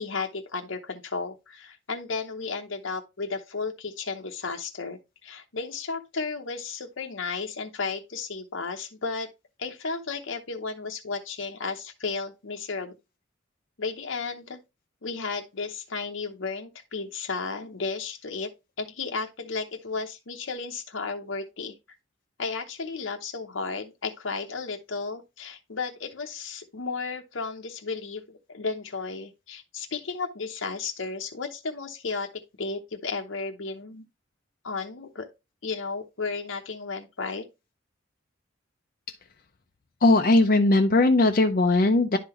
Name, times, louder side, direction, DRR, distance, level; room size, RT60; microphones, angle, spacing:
voice 1, 0.0-9.3 9.6-12.9 13.8-14.6 15.0-18.5 18.8-21.7 22.4-32.3 32.6-34.0 34.6-35.3 35.6-37.4, left 4 dB, 80° left, 0.9 m, -33 dB
voice 2, 40.0-42.2, left 2 dB, 45° left, 0.6 m, -19 dB
11.0 x 3.9 x 3.0 m
head